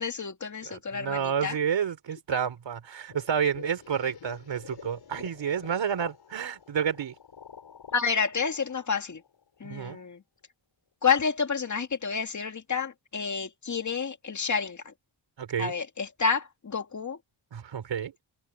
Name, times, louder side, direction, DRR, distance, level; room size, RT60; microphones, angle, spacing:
voice 1, 0.0-1.5 7.9-9.2 9.6-10.2 11.0-14.8 15.6-17.2, left 5 dB, 40° left, 2.2 m, -29 dB
voice 2, 0.6-7.1 9.6-10.0 15.4-15.7 17.5-18.1, right 7 dB, 75° right, 4.2 m, -30 dB
sound 1, 3.1-10.0, left 7 dB, 65° left, 7.4 m, -49 dB
cardioid pair, 95°, 45 cm